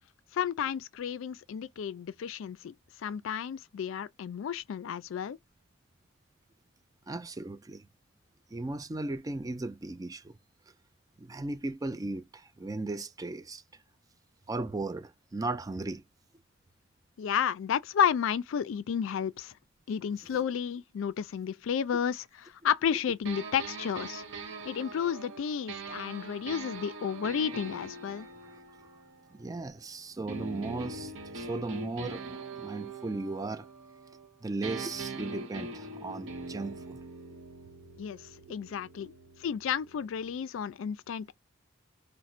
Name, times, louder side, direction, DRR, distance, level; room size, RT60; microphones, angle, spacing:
voice 1, 0.3-2.7 3.0-5.4 17.2-19.5 19.9-22.2 22.6-24.2 24.7-28.3 38.0-38.2 38.5-39.1 39.4-41.3, left 8 dB, 70° left, 0.3 m, -31 dB
voice 2, 7.1-7.9 8.5-10.4 11.2-13.6 14.5-16.0 28.2-28.9 29.3-32.2 32.6-33.7 34.4-37.0 38.5-38.6 39.0-39.1, right 2 dB, 20° right, 0.4 m, -36 dB
sound 1, 23.3-29.8 30.3-34.3 34.6-40.4, right 3 dB, 65° right, 0.9 m, -43 dB
4.2 x 2.1 x 2.4 m
head